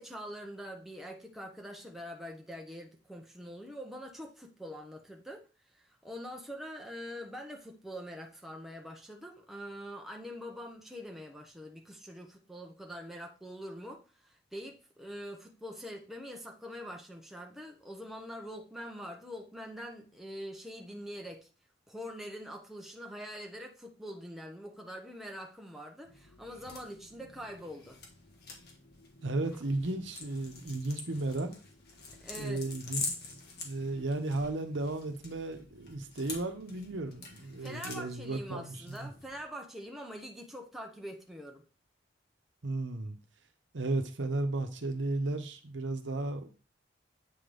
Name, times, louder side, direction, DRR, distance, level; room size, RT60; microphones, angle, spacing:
voice 1, 0.0-5.4 5.8-21.5 21.9-28.0 31.1-31.2 32.2-32.7 37.6-41.6, equal, ahead, 0.8 m, -44 dB
sound 1, 26.0-39.4, left 4 dB, 55° left, 1.4 m, -46 dB
voice 2, 29.2-31.5 32.4-33.0 33.6-39.1 42.6-43.2 43.7-46.5, right 2 dB, 75° right, 0.9 m, -34 dB
8.4 x 3.8 x 3.4 m
head